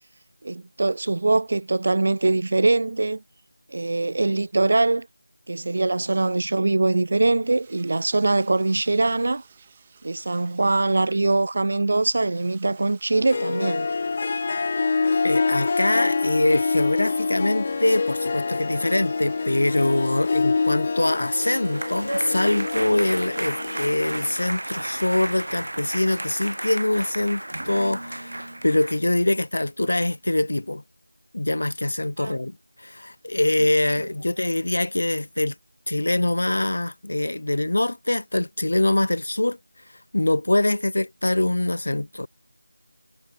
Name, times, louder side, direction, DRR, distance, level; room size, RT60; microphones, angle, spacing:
voice 1, 0.4-3.2 3.7-5.1 5.5-9.4 10.0-13.9 32.2-32.4, right 2 dB, 35° right, 0.4 m, -22 dB
sound 1, 7.4-24.4, right 6 dB, 15° right, 6.7 m, -54 dB
Harp, 13.1-24.3, left 4 dB, 20° left, 1.1 m, -26 dB
voice 2, 15.2-30.8 31.3-35.5 35.9-39.6 40.1-42.3, left 1 dB, 60° left, 1.3 m, -24 dB
sound 2, 21.1-29.0, right 1 dB, 85° right, 0.8 m, -33 dB
figure-of-eight pair, 180°, 0 cm